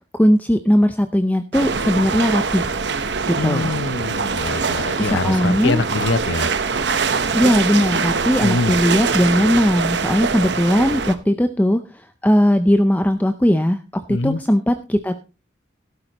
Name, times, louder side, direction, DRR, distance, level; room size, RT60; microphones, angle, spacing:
voice 1, 0.1-2.7 3.3-3.7 5.0-5.8 7.3-13.8 14.1-15.2, equal, 10° left, 8 dB, 0.5 m, -18 dB
sound 1, 1.5-11.1, right 5 dB, 65° right, 0.9 m, -23 dB
voice 2, 3.4-6.5 8.4-8.8 14.1-14.4, left 3 dB, 85° left, 16 dB, 0.7 m, -24 dB
13.0 x 12.0 x 2.9 m, 0.32 s
head